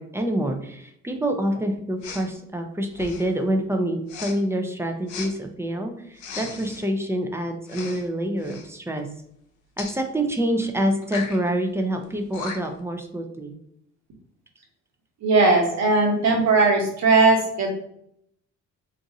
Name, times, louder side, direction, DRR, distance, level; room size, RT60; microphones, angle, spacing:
voice 1, 0.0-9.1 9.8-13.5, right 1 dB, 10° right, 4 dB, 0.4 m, -26 dB
Respiratory sounds, 2.0-2.3 2.9-3.4 4.1-4.4 5.1-5.3 6.2-6.9 7.7-8.1 8.4-8.7 9.8-10.0 11.0-11.4 12.0-12.1 12.3-12.8, left 5 dB, 80° left, 0.7 m, -36 dB
voice 2, 15.2-17.7, right 3 dB, 65° right, 0 dB, 1.1 m, -18 dB
2.5 x 2.5 x 4.0 m, 0.72 s
cardioid pair, 90°, 30 cm